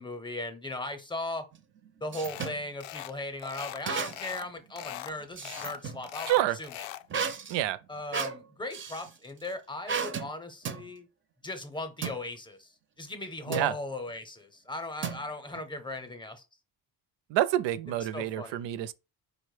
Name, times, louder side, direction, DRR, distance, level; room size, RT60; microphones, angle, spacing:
voice 1, 0.0-1.5 2.0-6.9 7.9-11.1 11.4-12.7 13.0-16.4 18.0-18.6, left 2 dB, 10° left, 0.7 m, -38 dB
sound 1, 1.5-2.6 3.8-4.4 4.8-6.0 7.1-9.1 9.9-10.3 10.6-10.9 12.0-12.2 13.5-13.8 15.0-15.6, right 6 dB, 25° right, 0.5 m, -34 dB
sound 2, 2.2-2.5 2.8-3.1 3.4-4.5 4.8-5.1 5.4-7.1, left 13 dB, 85° left, 0.5 m, -40 dB
voice 2, 6.3-6.6 7.5-7.8 13.5-13.7 17.3-18.9, right 14 dB, 75° right, 0.6 m, -27 dB
4.9 x 2.2 x 4.8 m
cardioid pair, 135°, 45 cm